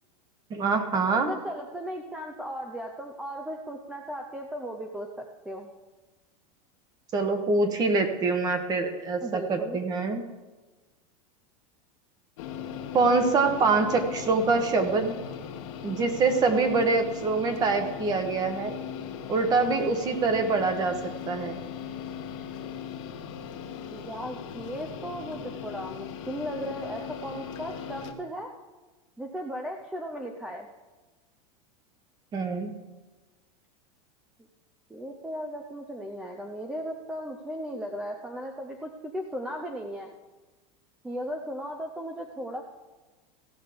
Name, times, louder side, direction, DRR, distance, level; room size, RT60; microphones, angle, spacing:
voice 1, 0.5-1.3 7.1-10.2 12.9-15.1 15.8-18.7 19.3-20.9 21.3-21.6 32.3-32.7, right 4 dB, 20° right, 7 dB, 1.2 m, -25 dB
voice 2, 1.3-5.7 9.2-9.8 16.6-16.9 19.5-19.9 23.9-28.5 29.2-30.7 34.9-40.1 41.0-42.6, equal, 5° right, 3 dB, 0.6 m, -36 dB
sound 1, 12.4-28.1, left 8 dB, 60° left, 1.3 m, -38 dB
16.0 x 6.4 x 5.1 m, 1.2 s
supercardioid pair, 165°, 18 cm